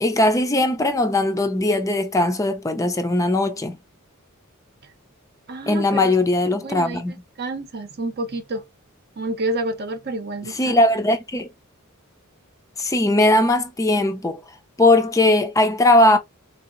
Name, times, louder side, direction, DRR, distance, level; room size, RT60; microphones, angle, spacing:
voice 1, 0.0-3.8 5.7-7.1 10.4-11.5 12.8-14.4 14.8-16.2, left 1 dB, 15° left, 0.5 m, -19 dB
voice 2, 5.5-6.1 6.5-7.0 7.4-8.7 9.2-10.8, right 2 dB, 50° right, 0.7 m, -29 dB
3.8 x 2.8 x 2.5 m
head